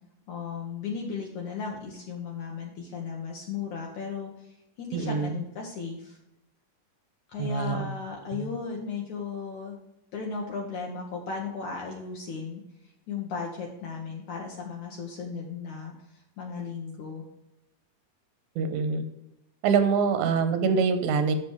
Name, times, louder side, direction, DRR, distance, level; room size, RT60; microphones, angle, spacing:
voice 1, 0.3-6.2 7.3-9.7 10.1-12.6 13.1-15.9 16.4-17.2, left 5 dB, 70° left, -1 dB, 2.5 m, -35 dB
voice 2, 4.9-5.4 7.4-7.9 8.3-8.5 18.6-19.0 19.6-21.4, right 5 dB, 70° right, 8 dB, 2.2 m, -25 dB
7.7 x 7.0 x 4.6 m, 0.89 s
omnidirectional pair, 3.8 m